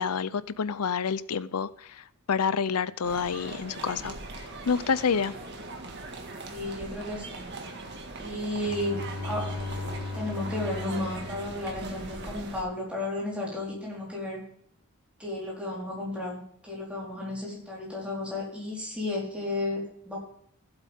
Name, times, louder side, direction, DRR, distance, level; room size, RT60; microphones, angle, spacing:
voice 1, 0.0-4.1 4.7-5.3, left 6 dB, 90° left, 17 dB, 0.6 m, -28 dB
sound 1, 3.0-12.6, right 2 dB, 50° right, 1.8 m, -40 dB
voice 2, 6.5-7.5 8.2-9.5 10.1-14.4 15.2-20.2, left 1 dB, 5° right, -4 dB, 4.2 m, -33 dB
Bowed string instrument, 8.5-12.3, left 3 dB, 75° left, 1.1 m, -37 dB
15.0 x 8.1 x 3.6 m, 0.66 s
head